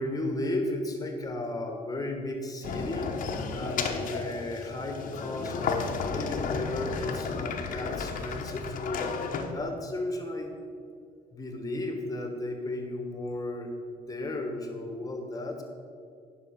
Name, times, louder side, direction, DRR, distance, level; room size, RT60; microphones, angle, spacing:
voice 1, 0.0-9.0 9.5-10.5 11.3-15.6, left 1 dB, 20° left, 4 dB, 1.3 m, -34 dB
sound 1, 2.6-9.5, left 5 dB, 50° left, 0.9 m, -33 dB
10.5 x 5.5 x 5.2 m, 2.2 s
cardioid pair, 110°, 17 cm